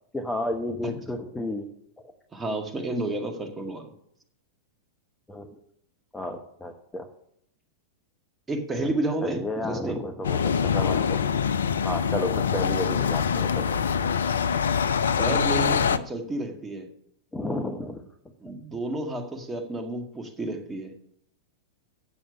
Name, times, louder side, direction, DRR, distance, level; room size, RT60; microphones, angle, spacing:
voice 1, 0.1-1.7 5.3-5.5 6.1-7.1 8.8-8.9 9.2-11.2 11.8-13.8 17.3-18.0 18.5-18.6, left 1 dB, 10° left, 5 dB, 1.1 m, -32 dB
voice 2, 2.3-3.9 8.5-10.0 13.7-14.1 15.2-16.9 18.4-20.9, right 2 dB, 15° right, 5 dB, 1.9 m, -31 dB
sound 1, 10.2-16.0, left 7 dB, 75° left, 0.5 m, -24 dB
8.5 x 7.0 x 7.0 m, 0.71 s
figure-of-eight pair, 95°, 0 cm